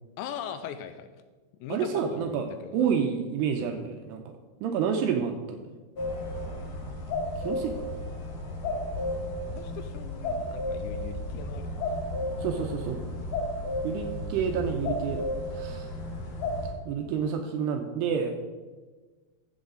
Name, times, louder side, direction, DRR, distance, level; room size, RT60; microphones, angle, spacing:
voice 1, 0.2-1.1 1.6-2.9 3.6-3.7 9.4-11.7 12.5-12.7, left 8 dB, 85° left, 10 dB, 2.7 m, -40 dB
voice 2, 1.7-4.2 4.6-5.6 7.4-7.9 12.4-13.0 13.8-15.2 15.5-15.9 16.9-18.3, right 7 dB, 80° right, 4 dB, 2.5 m, -29 dB
sound 1, 6.0-16.7, left 1 dB, 60° left, 2.5 m, -33 dB
13.5 x 7.2 x 3.8 m, 1.3 s
omnidirectional pair, 5.3 m